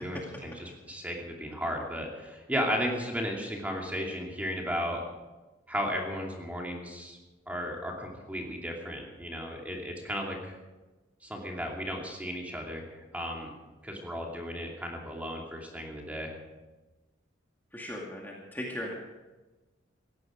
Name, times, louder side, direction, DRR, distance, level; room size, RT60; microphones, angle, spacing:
voice 1, 0.0-5.0 5.7-7.2 7.5-10.6 11.2-13.5 13.8-16.3, equal, 10° right, 0 dB, 2.6 m, -35 dB
voice 2, 17.7-18.9, equal, 10° left, -3 dB, 2.2 m, -38 dB
18.0 x 15.0 x 5.1 m, 1.2 s
head